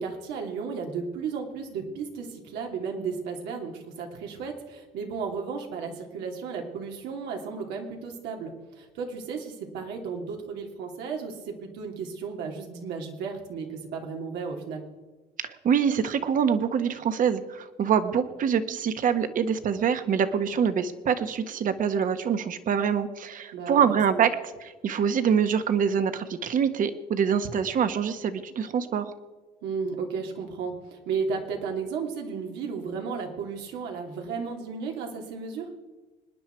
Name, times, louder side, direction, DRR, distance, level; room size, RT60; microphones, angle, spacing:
voice 1, 0.0-14.8 23.5-23.9 24.1-24.2 29.6-35.7, right 5 dB, 85° right, 2 dB, 2.8 m, -34 dB
voice 2, 15.4-24.3 24.6-29.1, right 7 dB, 50° right, 9 dB, 1.4 m, -25 dB
26.0 x 10.0 x 4.6 m, 1.3 s
cardioid pair, 110°, 17 cm